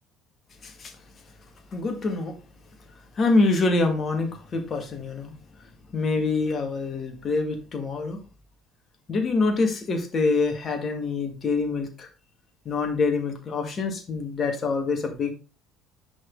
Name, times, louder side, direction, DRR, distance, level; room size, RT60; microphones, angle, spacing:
voice 1, 1.7-2.3 3.2-5.3 5.9-8.2 9.1-12.1 12.7-15.3, left 3 dB, 35° left, 5 dB, 2.1 m, -25 dB
9.8 x 4.3 x 3.9 m, 0.33 s
figure-of-eight pair, 60°, 0 cm